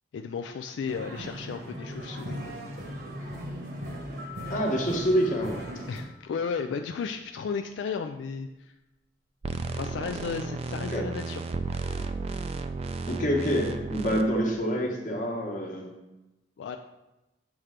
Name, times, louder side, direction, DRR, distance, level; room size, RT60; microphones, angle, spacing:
voice 1, 0.1-2.7 5.9-8.7 9.7-11.4 16.6-16.8, left 5 dB, 85° left, 5 dB, 0.3 m, -34 dB
sound 1, 0.9-6.0, equal, 55° right, 1.0 m, -38 dB
sound 2, 4.2-6.9, left 10 dB, 90° right, 1.2 m, -47 dB
voice 2, 4.5-5.6 10.9-11.0 13.1-15.9, equal, 45° left, 0 dB, 1.1 m, -27 dB
sound 3, 9.4-14.2, right 4 dB, 35° right, 0.3 m, -33 dB
7.2 x 3.3 x 4.9 m, 1.0 s
head